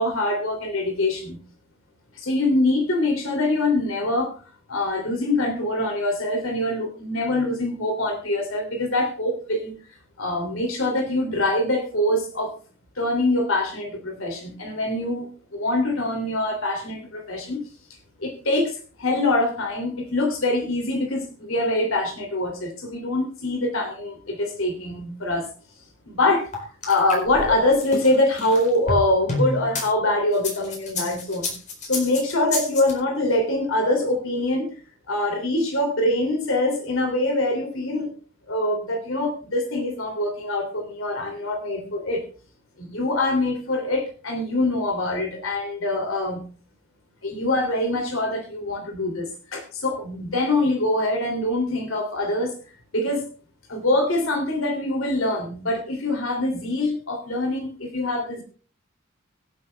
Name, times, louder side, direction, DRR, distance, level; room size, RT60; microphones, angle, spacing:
voice 1, 0.0-1.4 2.2-4.3 4.7-9.7 10.2-12.5 13.0-17.6 18.2-25.5 26.1-26.5 26.8-31.6 31.8-34.7 35.1-38.1 38.5-42.2 42.8-46.4 47.2-52.5 52.9-53.2 53.7-58.4, left 2 dB, 75° left, 3 dB, 2.9 m, -24 dB
sound 1, 26.5-29.9 30.3-32.9, left 2 dB, 35° left, 4.3 m, -29 dB
24.0 x 8.2 x 2.3 m, 0.40 s
head